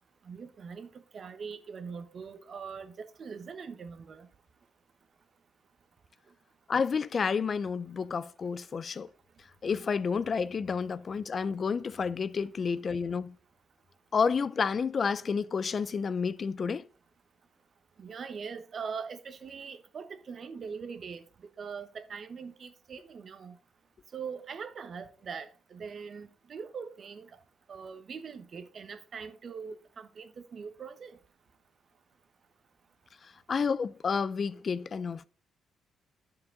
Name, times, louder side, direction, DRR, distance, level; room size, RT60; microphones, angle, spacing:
voice 1, 0.2-4.3 18.0-21.2 21.6-23.6 24.1-27.3 27.7-31.2, right 6 dB, 50° right, 1.1 m, -42 dB
voice 2, 6.7-9.1 9.6-13.3 14.1-16.8 33.5-35.3, left 5 dB, 45° left, 0.4 m, -30 dB
9.5 x 6.9 x 3.8 m
cardioid pair, 90°, 0 cm